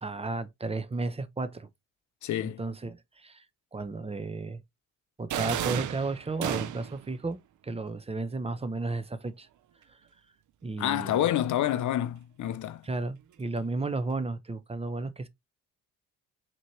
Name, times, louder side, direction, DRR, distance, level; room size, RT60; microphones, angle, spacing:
voice 1, 0.0-1.7 2.4-3.4 3.7-4.6 5.2-9.5 10.6-11.3 12.8-15.3, right 3 dB, 15° right, 0.7 m, -33 dB
voice 2, 2.2-2.6 10.8-12.8, left 12 dB, 55° left, 0.6 m, -28 dB
sound 1, 5.3-7.1, right 11 dB, 55° right, 0.6 m, -32 dB
4.2 x 3.0 x 3.1 m
supercardioid pair, 60°, 36 cm